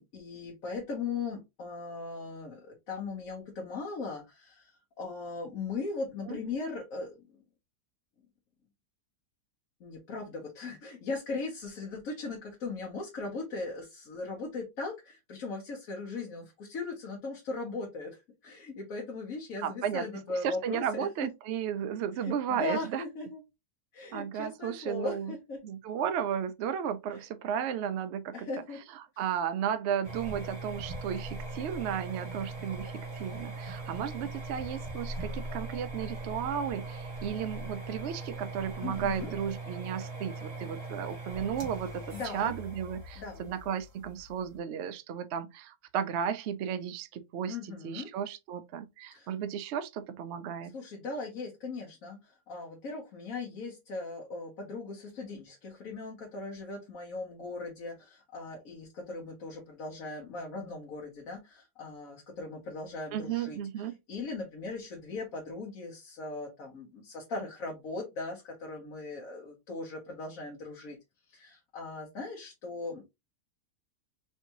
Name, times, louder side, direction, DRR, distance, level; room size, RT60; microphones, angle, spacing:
voice 1, 0.0-7.4 9.8-21.1 22.1-23.4 23.9-25.6 27.1-27.2 28.3-28.8 38.8-39.3 42.1-42.5 43.2-43.5 47.5-48.1 49.1-49.3 50.7-71.0 71.3-73.1, left 3 dB, 60° left, 1.4 m, -39 dB
voice 2, 19.6-20.1 20.4-23.0 24.1-25.3 25.6-28.5 29.2-47.6 47.8-50.7 63.1-64.0, right 8 dB, 85° right, 0.6 m, -34 dB
sound 1, 30.0-44.5, right 2 dB, 50° right, 1.9 m, -40 dB
4.4 x 2.8 x 2.8 m
omnidirectional pair, 1.7 m